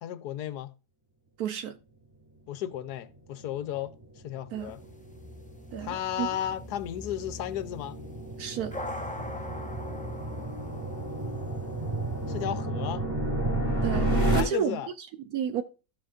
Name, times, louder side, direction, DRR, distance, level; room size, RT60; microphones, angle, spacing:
voice 1, 0.0-0.7 2.5-3.9 4.2-4.8 5.8-8.0 12.3-13.0 14.3-14.9, left 11 dB, 75° left, 1.2 m, -34 dB
voice 2, 1.4-1.8 4.5-4.7 5.7-6.3 8.4-8.8 13.8-15.6, right 9 dB, 70° right, 1.1 m, -32 dB
sound 1, 3.3-14.4, right 1 dB, 15° right, 2.8 m, -32 dB
sound 2, 4.6-12.5, left 2 dB, 10° left, 0.5 m, -43 dB
15.0 x 6.0 x 2.4 m
omnidirectional pair, 1.8 m